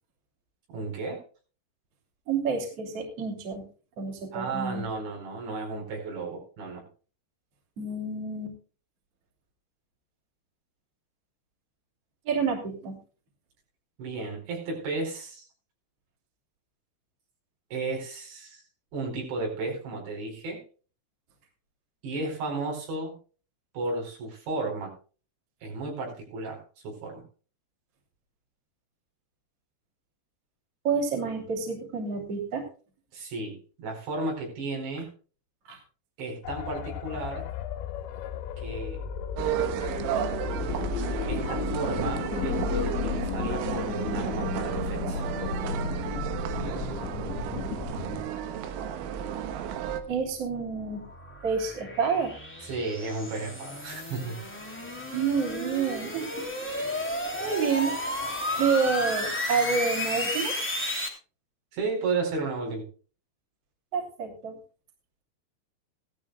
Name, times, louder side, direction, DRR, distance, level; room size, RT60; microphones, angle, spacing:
voice 1, 0.7-1.2 4.3-6.9 14.0-15.5 17.7-18.6 18.9-20.6 22.0-23.2 23.7-24.9 25.6-27.2 33.1-35.1 36.2-37.5 38.6-39.0 41.3-45.2 52.6-54.4 61.7-62.9, right 3 dB, 70° right, 1 dB, 6.8 m, -33 dB
voice 2, 2.3-3.7 4.0-4.8 7.8-8.6 12.3-13.0 30.8-32.6 35.7-35.8 50.1-51.0 51.4-52.3 55.1-57.0 57.4-58.0 58.6-60.6 63.9-64.6, right 5 dB, 35° right, 1 dB, 3.7 m, -29 dB
sound 1, 36.4-48.2, left 7 dB, 85° left, 3.3 m, -33 dB
sound 2, 39.4-50.0, right 9 dB, 90° right, 3.6 m, -33 dB
sound 3, 49.8-61.1, left 1 dB, 5° left, 1.5 m, -33 dB
17.5 x 13.5 x 2.2 m, 0.37 s
omnidirectional pair, 5.3 m